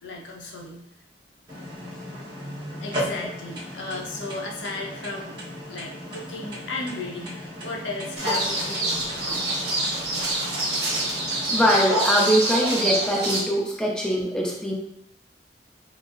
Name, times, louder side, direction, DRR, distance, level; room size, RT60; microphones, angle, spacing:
voice 1, 0.0-0.9 2.8-5.4 5.7-9.4 13.7-13.8, left 2 dB, 85° left, -1 dB, 0.8 m, -35 dB
sound 1, 1.5-11.8, equal, 25° right, 1.1 m, -36 dB
sound 2, 8.2-13.4, right 1 dB, 60° right, 1.0 m, -26 dB
voice 2, 11.5-14.7, equal, 5° left, -3 dB, 0.5 m, -22 dB
5.9 x 2.0 x 2.5 m, 0.76 s
head